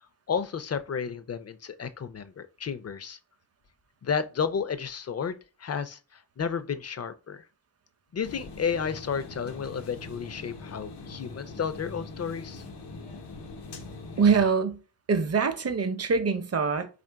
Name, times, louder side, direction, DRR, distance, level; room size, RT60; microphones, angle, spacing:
voice 1, 0.3-3.2 4.0-7.5 8.1-12.6, left 6 dB, 40° left, 0.5 m, -32 dB
sound 1, 8.2-14.4, left 3 dB, 90° left, 0.9 m, -42 dB
voice 2, 14.2-14.8 15.1-16.9, right 5 dB, 40° right, 0.7 m, -24 dB
3.5 x 2.5 x 4.5 m
wide cardioid pair, 95°, 39 cm